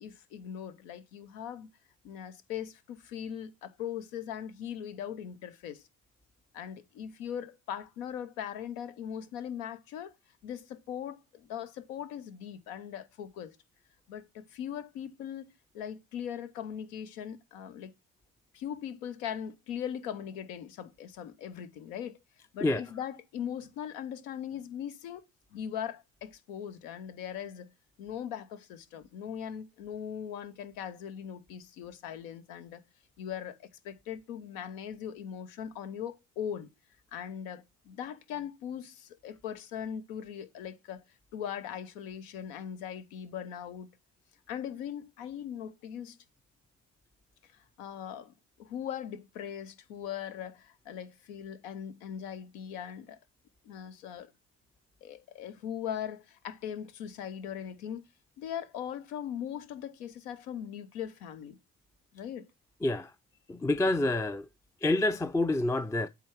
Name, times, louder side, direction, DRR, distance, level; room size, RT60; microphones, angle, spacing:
voice 1, 0.0-1.7 2.0-5.8 6.5-10.1 10.4-13.6 14.1-17.9 18.5-22.2 22.5-25.2 25.5-27.7 28.0-32.8 33.2-36.7 37.1-41.0 41.3-43.9 44.5-46.2 47.8-48.3 48.6-53.2 53.6-54.3 55.0-58.0 58.4-61.6 62.1-62.5, left 9 dB, 80° left, 0.9 m, -40 dB
voice 2, 63.5-64.5 64.8-66.1, left 2 dB, 10° left, 0.4 m, -27 dB
8.2 x 3.5 x 4.5 m
hypercardioid pair, 50°, 39 cm